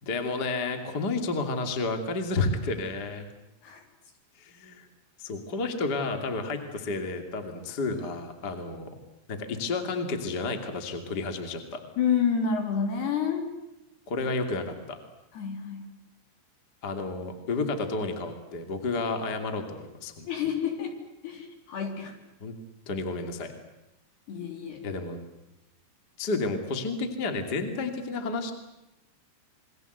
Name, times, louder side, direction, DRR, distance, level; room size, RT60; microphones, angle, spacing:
voice 1, 0.0-3.3 4.4-4.9 5.2-8.9 9.3-11.8 14.1-15.0 16.8-20.3 22.4-22.5 22.9-23.5 24.8-25.2 26.2-28.5, left 3 dB, 30° left, 6 dB, 2.5 m, -31 dB
voice 2, 12.0-13.5 15.3-15.9 20.2-20.9 21.2-22.2 24.3-24.8, left 7 dB, 65° left, 4 dB, 5.6 m, -29 dB
28.0 x 22.5 x 8.1 m, 0.90 s
omnidirectional pair, 5.1 m